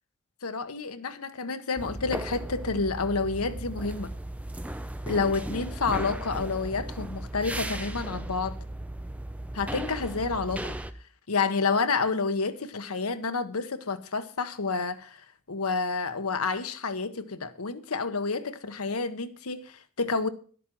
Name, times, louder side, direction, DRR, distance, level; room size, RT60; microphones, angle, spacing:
voice 1, 0.4-4.1 5.1-8.6 9.5-10.8 11.3-15.2 15.5-20.3, left 4 dB, 90° left, 1.1 m, -29 dB
sound 1, 1.8-10.9, right 1 dB, 5° right, 0.5 m, -36 dB
11.0 x 8.3 x 6.1 m
head